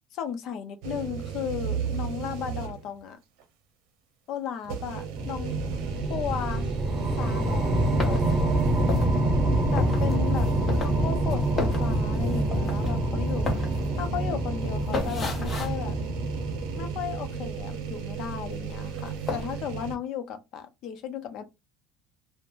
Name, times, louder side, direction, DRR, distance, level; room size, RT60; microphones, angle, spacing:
voice 1, 0.1-3.2 4.3-5.5 6.1-6.7 7.2-8.8 9.7-13.5 14.0-16.0 16.8-21.4, left 8 dB, 50° left, 0.6 m, -35 dB
sound 1, 0.8-3.0 3.4-3.5 4.6-20.0, right 7 dB, 75° right, 0.7 m, -34 dB
sound 2, 5.2-17.7, right 1 dB, 20° right, 0.6 m, -27 dB
sound 3, 7.9-17.1 17.4-18.4 18.7-19.6, left 3 dB, 20° left, 0.8 m, -34 dB
2.9 x 2.2 x 2.5 m
cardioid pair, 145°, 0 cm